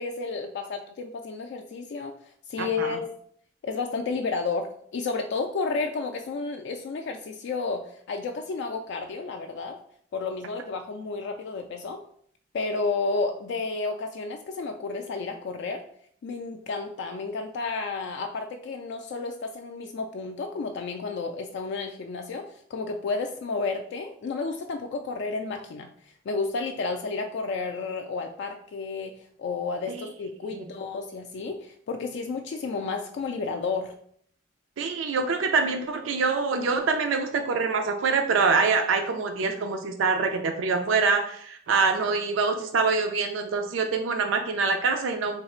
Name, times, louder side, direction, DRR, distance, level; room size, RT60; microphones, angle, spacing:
voice 1, 0.0-2.1 2.5-3.1 3.6-9.8 10.1-12.0 12.5-15.8 16.2-22.5 22.7-25.9 26.3-29.1 29.4-33.9, left 4 dB, 65° left, 4 dB, 0.3 m, -31 dB
voice 2, 2.6-3.0 29.9-30.0 30.4-30.7 34.8-45.4, right 4 dB, 90° right, 5 dB, 0.4 m, -25 dB
3.3 x 2.4 x 4.2 m, 0.63 s
head